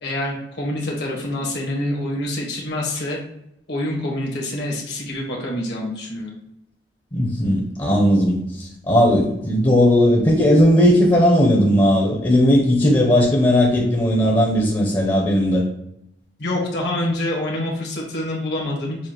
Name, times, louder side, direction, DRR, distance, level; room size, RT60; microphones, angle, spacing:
voice 1, 0.0-3.2 3.7-6.3 16.4-19.0, left 1 dB, 70° left, -3 dB, 1.6 m, -26 dB
voice 2, 7.1-15.6, equal, 25° left, -2 dB, 0.7 m, -17 dB
7.0 x 2.4 x 3.0 m, 0.80 s
head